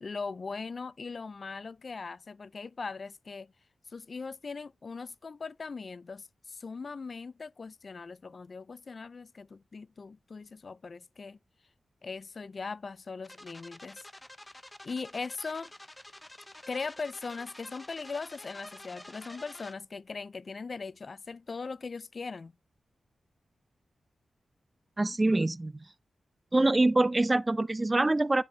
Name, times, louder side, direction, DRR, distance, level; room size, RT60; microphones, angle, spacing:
voice 1, 0.0-3.5 3.9-11.4 12.0-14.1 14.4-14.5 14.8-15.7 16.7-22.5, left 4 dB, 50° left, 0.3 m, -40 dB
sound 1, 13.2-19.7, left 1 dB, 15° left, 0.8 m, -49 dB
voice 2, 25.0-25.7 26.5-28.4, right 2 dB, 25° right, 0.4 m, -25 dB
10.5 x 4.2 x 3.2 m
cardioid pair, 70°, 0 cm